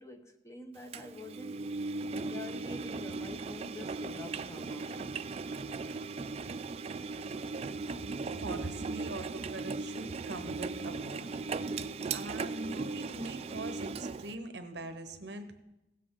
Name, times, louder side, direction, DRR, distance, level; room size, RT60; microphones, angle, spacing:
voice 1, 0.0-5.2 11.7-11.8, left 2 dB, 15° left, 5 dB, 0.8 m, -47 dB
Engine, 0.9-14.3, right 4 dB, 35° right, 0.3 m, -38 dB
voice 2, 7.9-15.6, right 2 dB, 65° right, 8 dB, 0.9 m, -43 dB
16.5 x 7.6 x 3.7 m, 0.94 s
head